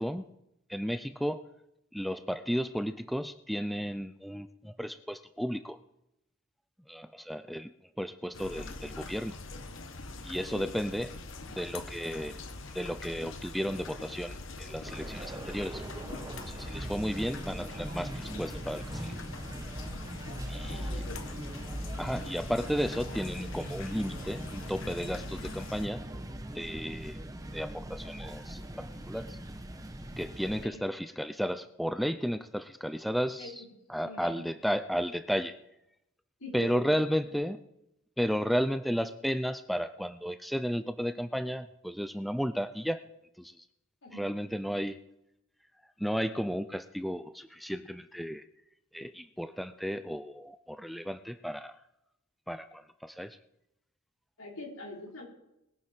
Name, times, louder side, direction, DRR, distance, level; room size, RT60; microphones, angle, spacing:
voice 1, 0.7-1.5 1.9-5.8 6.9-7.7 8.0-9.4 10.2-11.2 11.6-12.4 12.7-15.8 16.4-19.1 20.5-21.0 22.0-26.0 26.5-27.2 27.5-29.4 30.2-33.5 33.9-35.6 36.5-37.6 38.2-43.0 43.4-43.6 44.1-45.0 46.0-48.4 48.9-51.8 52.5-53.4, equal, ahead, 10 dB, 0.4 m, -33 dB
sound 1, 8.3-25.9, left 3 dB, 60° left, 1.2 m, -44 dB
sound 2, 14.8-30.7, right 1 dB, 15° right, 1.0 m, -40 dB
voice 2, 20.6-21.3 30.6-30.8 33.4-33.7 34.0-34.5 36.4-36.8 44.0-44.2 54.4-55.2, left 2 dB, 80° left, -1 dB, 4.1 m, -43 dB
21.0 x 9.6 x 4.4 m, 0.85 s
head